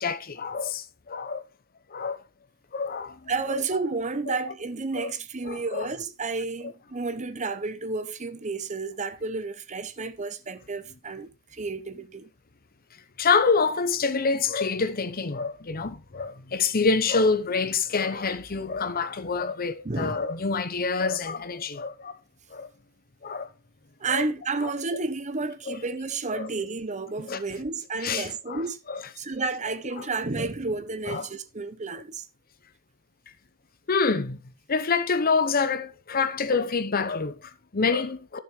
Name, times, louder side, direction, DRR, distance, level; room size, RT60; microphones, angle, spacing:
voice 1, 0.0-1.4 1.9-2.2 2.7-3.6 4.3-4.5 5.0-5.1 5.5-5.9 13.2-22.1 22.5-22.7 23.2-23.5 24.1-24.2 24.6-24.7 25.7-25.8 26.3-26.5 27.3-27.4 28.0-28.6 28.9-29.0 30.0-30.1 30.4-30.5 31.1-31.3 33.9-34.4 34.7-38.4, left 4 dB, 45° left, 0.9 m, -27 dB
voice 2, 3.3-12.3 19.8-20.3 24.0-28.8 29.2-32.3, right 3 dB, 35° right, 0.9 m, -31 dB
12.0 x 7.0 x 3.2 m
head